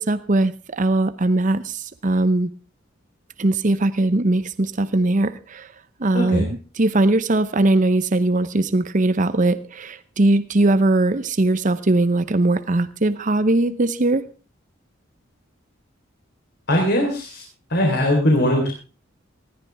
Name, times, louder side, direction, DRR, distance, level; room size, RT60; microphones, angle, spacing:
voice 1, 0.0-2.5 3.4-5.7 6.0-14.3, right 2 dB, 40° right, 0.7 m, -20 dB
voice 2, 6.1-6.5 16.7-17.4 17.7-18.7, left 1 dB, 55° left, 3.9 m, -20 dB
19.5 x 14.0 x 3.5 m
head